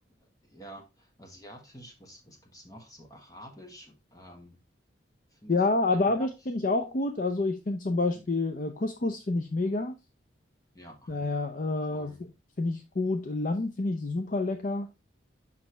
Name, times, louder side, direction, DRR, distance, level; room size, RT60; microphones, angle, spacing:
voice 1, 0.4-4.6 5.3-6.3 8.1-8.3 10.7-11.2 11.9-12.2, equal, 20° left, 1.4 m, -49 dB
voice 2, 5.5-9.9 11.1-12.2 12.6-14.9, left 2 dB, 45° left, 0.5 m, -28 dB
6.2 x 5.5 x 3.3 m
head